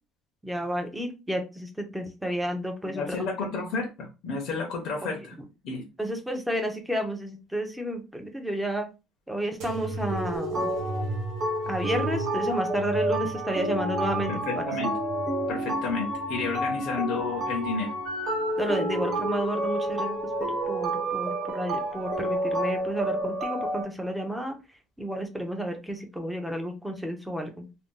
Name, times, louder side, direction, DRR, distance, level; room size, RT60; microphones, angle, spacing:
voice 1, 0.4-3.0 6.0-8.9 9.3-10.7 11.7-14.3 18.6-20.1 20.7-24.6 25.0-27.7, right 1 dB, ahead, 0.5 m, -31 dB
voice 2, 2.8-5.4 5.6-5.9 14.3-14.9 15.5-17.9, left 4 dB, 55° left, 0.6 m, -31 dB
sound 1, 9.6-16.8 17.3-18.1 18.9-19.4 20.4-20.5, right 2 dB, 65° right, 1.0 m, -37 dB
sound 2, 10.1-23.8, right 1 dB, 35° right, 1.1 m, -30 dB
2.5 x 2.2 x 3.7 m
cardioid pair, 170°, 0 cm